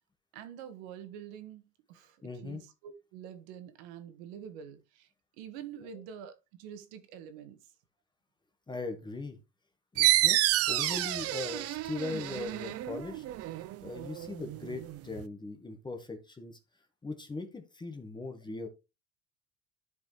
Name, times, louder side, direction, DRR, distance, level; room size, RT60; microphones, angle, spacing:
voice 1, 0.3-2.2 2.4-5.1 5.4-7.6, right 9 dB, 85° right, 1.7 m, -46 dB
voice 2, 2.2-2.6 5.8-6.0 8.7-9.4 9.9-10.4 10.7-13.2 13.8-16.6 17.0-18.7, left 3 dB, 15° left, 1.4 m, -39 dB
sound 1, 10.0-15.2, right 15 dB, 45° right, 0.6 m, -30 dB
11.5 x 5.2 x 3.1 m
cardioid pair, 135°, 32 cm